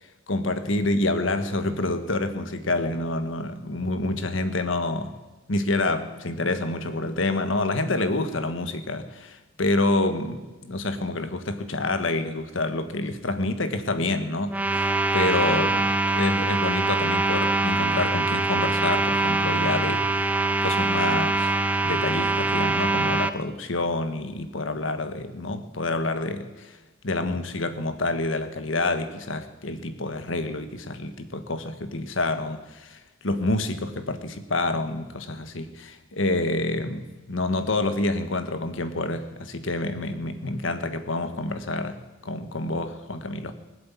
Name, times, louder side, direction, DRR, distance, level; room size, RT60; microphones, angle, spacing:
voice 1, 0.3-5.1 5.5-20.3 20.6-21.5 21.8-26.8 27.0-43.5, left 2 dB, 75° left, 9 dB, 1.4 m, -28 dB
sound 1, 14.5-23.3, right 2 dB, 5° right, 0.5 m, -23 dB
19.5 x 7.8 x 8.4 m, 1.2 s
head